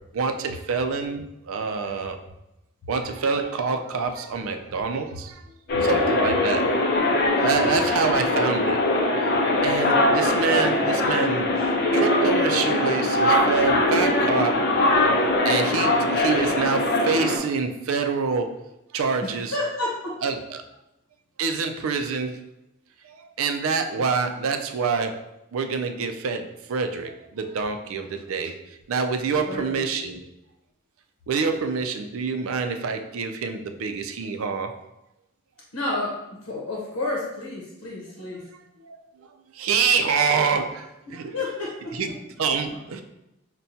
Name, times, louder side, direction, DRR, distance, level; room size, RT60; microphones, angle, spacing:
voice 1, 0.1-2.2 2.9-5.5 5.8-6.7 7.4-8.8 9.6-11.5 11.9-15.1 15.4-18.6 18.9-19.5 20.2-20.6 21.4-22.4 23.0-25.2 25.5-30.2 31.3-34.7 38.4-41.3 41.9-43.0, right 5 dB, 80° right, 7 dB, 0.4 m, -26 dB
sound 1, 5.7-17.4, left 1 dB, 50° left, 0.5 m, -21 dB
voice 2, 19.2-20.2 29.4-29.8 35.7-38.5 41.3-42.1, left 2 dB, 90° left, -3 dB, 0.8 m, -31 dB
5.6 x 2.2 x 2.7 m, 0.88 s
head